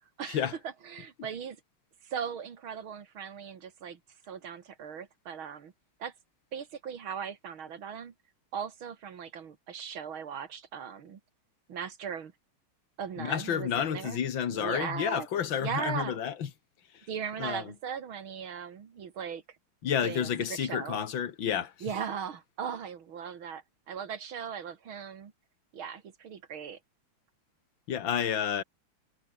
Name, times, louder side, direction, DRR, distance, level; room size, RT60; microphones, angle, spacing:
voice 1, 0.2-1.6 2.0-4.0 4.3-5.7 6.0-6.1 6.5-8.1 8.5-11.2 11.7-12.3 13.0-14.2 14.5-15.3 15.6-16.2 17.1-19.4 20.0-21.0 21.8-25.3 25.7-26.8, right 7 dB, 75° right, 2.7 m, -38 dB
voice 2, 13.2-16.5 16.9-17.1 17.4-17.7 19.8-21.7 27.9-28.6, left 8 dB, 65° left, 2.2 m, -30 dB
omnidirectional pair, 2.3 m